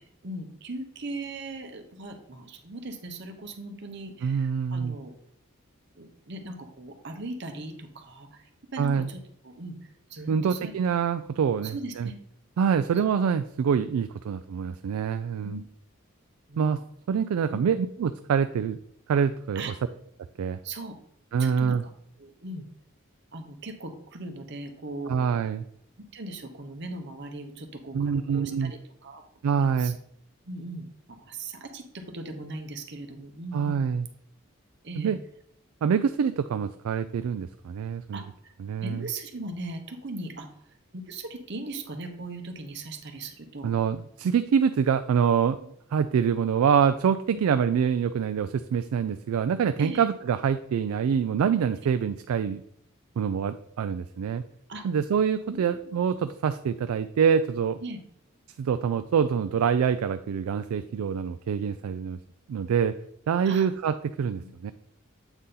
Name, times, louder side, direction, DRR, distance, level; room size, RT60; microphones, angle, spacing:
voice 1, 0.2-5.1 5.9-9.2 9.4-10.7 11.6-12.1 15.4-15.6 16.5-16.8 17.5-17.6 19.5-19.7 20.6-20.9 21.4-21.9 22.2-22.7 23.3-25.3 26.1-29.2 29.5-29.9 30.4-33.8 34.8-35.1 38.1-38.5 38.8-40.5 40.9-43.7 47.3-47.4 49.8-50.1 54.7-54.8 55.5-56.0 57.8-58.0 63.4-63.7 64.4-64.5, right 2 dB, 55° right, 5 dB, 0.9 m, -39 dB
voice 2, 4.2-5.0 8.8-9.1 10.3-12.1 12.6-15.6 16.6-16.8 17.1-18.8 19.1-19.7 20.4-20.6 21.3-21.8 25.1-25.6 27.9-28.7 29.4-30.0 33.5-34.1 35.0-35.2 35.8-38.2 38.6-39.1 43.6-52.6 53.2-54.4 54.8-57.8 58.6-62.2 62.5-62.9 63.3-64.7, right 7 dB, 85° right, 10 dB, 0.3 m, -25 dB
8.0 x 4.1 x 3.7 m, 0.70 s
head